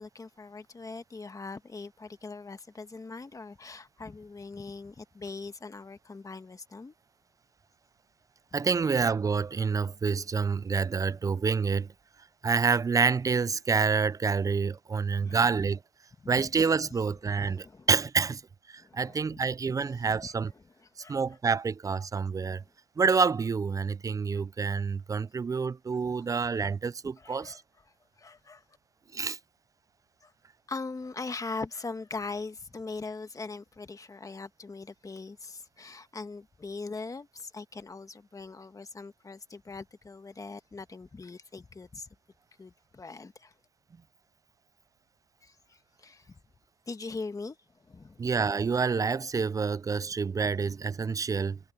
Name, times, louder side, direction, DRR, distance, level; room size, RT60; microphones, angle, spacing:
voice 1, 0.0-6.9 15.2-15.6 16.2-16.5 17.4-17.9 18.8-19.4 20.1-20.3 21.0-21.4 22.4-22.7 27.2-27.6 28.2-28.6 30.2-30.3 30.7-42.1 42.6-43.5 45.4-46.4 46.9-48.2, left 3 dB, 20° left, 1.5 m, -41 dB
voice 2, 8.5-11.9 12.4-15.8 16.3-18.4 18.7-20.5 21.1-22.6 23.0-27.6 29.1-29.4 48.2-51.6, right 5 dB, 20° right, 0.3 m, -28 dB
cardioid pair, 110°, 17 cm